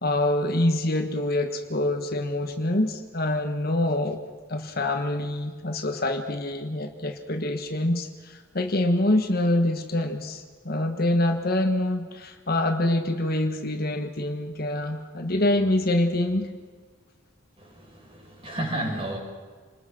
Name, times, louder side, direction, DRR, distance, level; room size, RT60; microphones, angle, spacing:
voice 1, 0.0-4.2 4.5-16.5, left 1 dB, 45° left, 6 dB, 1.4 m, -25 dB
voice 2, 17.6-19.2, right 1 dB, 25° right, 0 dB, 5.9 m, -32 dB
28.5 x 21.0 x 6.2 m, 1.5 s
head